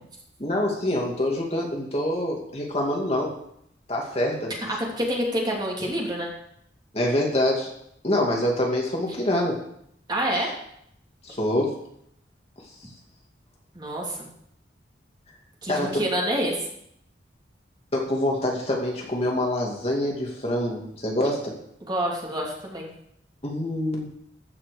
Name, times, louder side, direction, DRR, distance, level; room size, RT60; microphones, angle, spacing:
voice 1, 0.4-3.3 3.9-4.5 6.9-7.7 8.0-9.6 11.2-11.7 15.7-16.0 17.9-21.5 23.4-24.1, left 1 dB, 35° left, -1 dB, 2.3 m, -25 dB
voice 2, 4.7-6.3 10.1-10.5 13.7-14.2 15.6-16.7 21.8-22.9, equal, 25° right, -2 dB, 2.9 m, -27 dB
14.5 x 5.9 x 6.6 m, 0.73 s
head